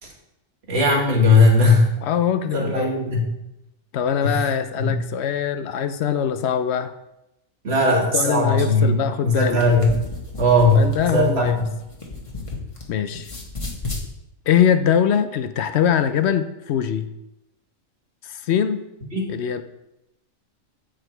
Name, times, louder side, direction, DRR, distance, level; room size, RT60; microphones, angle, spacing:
voice 1, 0.7-1.9 2.5-3.2 4.2-4.4 4.8-5.0 7.6-9.9 10.4-11.6 19.1-19.3, left 2 dB, 50° right, -1 dB, 1.9 m, -18 dB
voice 2, 2.0-2.9 3.9-6.9 8.1-9.7 10.7-11.6 12.9-13.3 14.5-17.1 18.2-18.8 19.3-19.6, left 8 dB, 65° left, 10 dB, 0.7 m, -22 dB
sound 1, 9.4-12.8 13.1-14.1, left 3 dB, 25° left, 1.2 m, -33 dB
8.0 x 5.1 x 4.4 m, 0.89 s
omnidirectional pair, 1.4 m